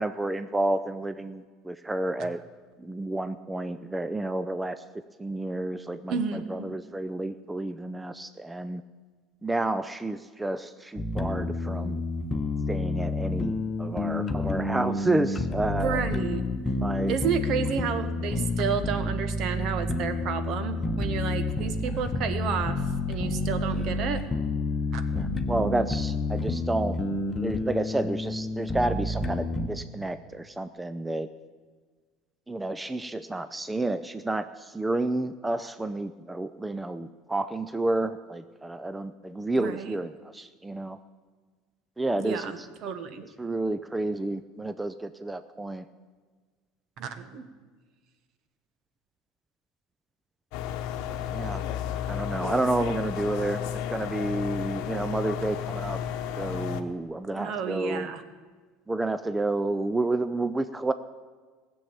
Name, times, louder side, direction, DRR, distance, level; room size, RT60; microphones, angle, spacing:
voice 1, 0.0-2.4 2.8-4.8 5.2-8.8 9.4-12.0 12.7-13.5 13.8-16.1 16.8-17.1 25.1-27.0 27.4-31.3 32.5-41.0 42.0-42.7 43.4-45.9 51.1-51.6 52.1-53.6 53.9-56.0 56.4-58.1 58.9-60.9, right 2 dB, 10° right, 12 dB, 0.5 m, -30 dB
voice 2, 6.1-6.7 15.8-16.5 17.1-22.8 23.1-24.2 24.9-25.0 39.6-40.0 42.2-43.2 47.0-47.4 52.5-52.6 57.4-58.2, right 7 dB, 55° right, 10 dB, 1.2 m, -31 dB
sound 1, 11.0-29.7, left 2 dB, 20° left, 1.2 m, -29 dB
sound 2, 50.5-56.8, left 9 dB, 70° left, 0.9 m, -32 dB
16.0 x 7.0 x 8.9 m, 1.5 s
supercardioid pair, 95°, 0 cm